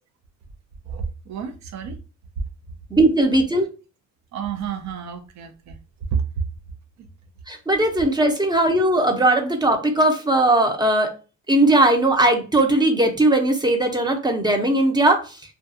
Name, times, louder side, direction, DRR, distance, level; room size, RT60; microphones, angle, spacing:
voice 1, 0.9-2.0 4.3-5.8 6.1-6.2, right 7 dB, 65° right, 0.6 m, -29 dB
voice 2, 2.9-3.7 7.5-11.1 11.5-15.4, right 1 dB, 15° right, 0.6 m, -18 dB
2.4 x 2.3 x 2.6 m
cardioid pair, 90°, 30 cm